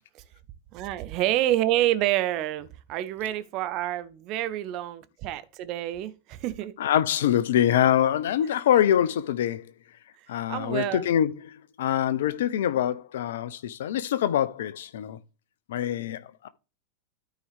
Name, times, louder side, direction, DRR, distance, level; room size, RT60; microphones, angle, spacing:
voice 1, 0.7-6.7 10.5-11.1, right 14 dB, 40° right, 0.9 m, -28 dB
voice 2, 6.8-9.7 10.3-15.2 15.7-16.5, left 10 dB, 60° left, 0.7 m, -24 dB
13.0 x 4.6 x 3.5 m
figure-of-eight pair, 90°, 0 cm